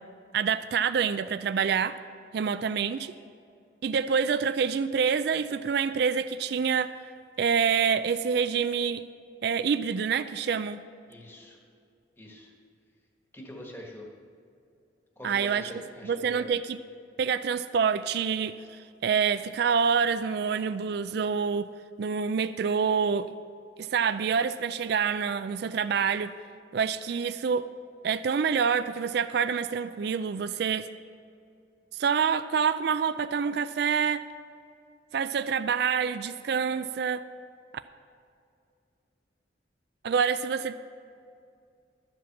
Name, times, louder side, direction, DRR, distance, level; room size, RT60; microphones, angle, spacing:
voice 1, 0.3-2.0 2.3-3.1 3.8-6.9 7.4-9.0 9.4-10.8 15.2-15.6 16.0-16.8 17.2-21.7 22.0-23.3 23.8-26.3 26.7-27.7 28.0-30.9 31.9-34.2 35.1-37.2 40.0-40.7, right 6 dB, 55° right, 12 dB, 0.3 m, -27 dB
voice 2, 11.1-11.6 12.2-12.5 13.3-14.0 15.2-16.5, left 1 dB, 10° left, 0 dB, 1.4 m, -44 dB
12.5 x 7.6 x 5.9 m, 2.4 s
head